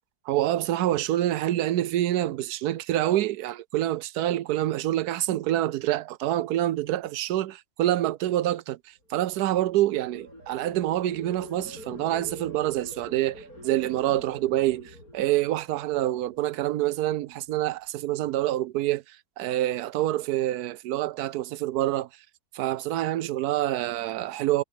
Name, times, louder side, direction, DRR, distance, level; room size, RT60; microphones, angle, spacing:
voice 1, 0.3-22.1 22.5-24.6, right 14 dB, 80° right, 1.1 m, -27 dB
sound 1, 9.2-16.3 16.7-17.1, equal, 65° left, 7.3 m, -45 dB
omnidirectional pair, 1.7 m